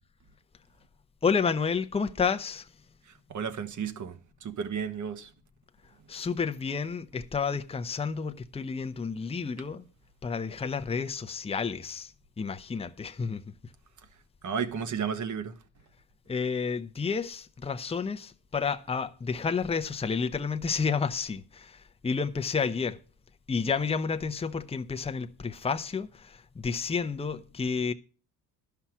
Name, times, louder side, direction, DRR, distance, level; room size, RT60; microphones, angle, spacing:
voice 1, 1.2-2.7 6.1-9.9 10.2-13.4 16.3-23.0 23.5-27.9, left 5 dB, 15° left, 0.7 m, -30 dB
voice 2, 3.3-5.3 14.4-15.5, right 7 dB, 45° right, 1.4 m, -33 dB
12.0 x 5.8 x 6.0 m
supercardioid pair, 85°, 40 cm